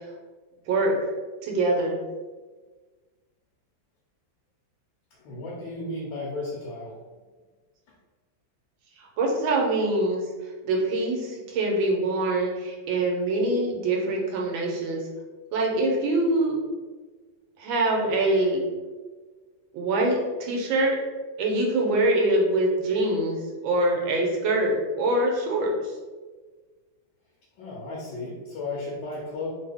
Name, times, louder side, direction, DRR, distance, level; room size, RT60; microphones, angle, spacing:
voice 1, 1.4-2.0 9.0-10.2 10.6-15.0 15.5-16.6 17.6-18.6 19.7-21.0 21.4-25.9, right 2 dB, 80° right, 0 dB, 1.5 m, -24 dB
voice 2, 5.1-7.0 27.6-29.5, left 2 dB, 85° left, -5 dB, 1.5 m, -34 dB
3.7 x 2.3 x 3.4 m, 1.4 s
omnidirectional pair, 2.1 m